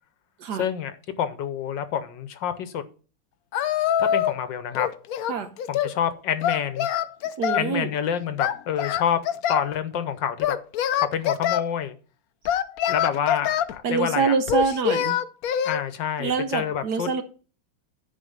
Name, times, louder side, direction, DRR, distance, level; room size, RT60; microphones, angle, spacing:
voice 1, 0.6-2.8 4.0-4.9 5.7-6.9 7.5-9.2 9.5-10.5 11.0-11.9 12.9-14.3 15.6-17.1, left 8 dB, 70° left, 11 dB, 1.4 m, -27 dB
Singing, 3.5-4.4 4.7-6.0 6.4-7.7 8.4-9.7 10.4-11.6 12.5-13.7 14.5-15.8, left 10 dB, 85° left, 0.8 m, -24 dB
voice 2, 7.4-7.9 13.8-15.2 16.2-17.2, right 5 dB, 65° right, 9 dB, 1.2 m, -25 dB
10.0 x 4.8 x 5.2 m, 0.38 s
omnidirectional pair, 2.2 m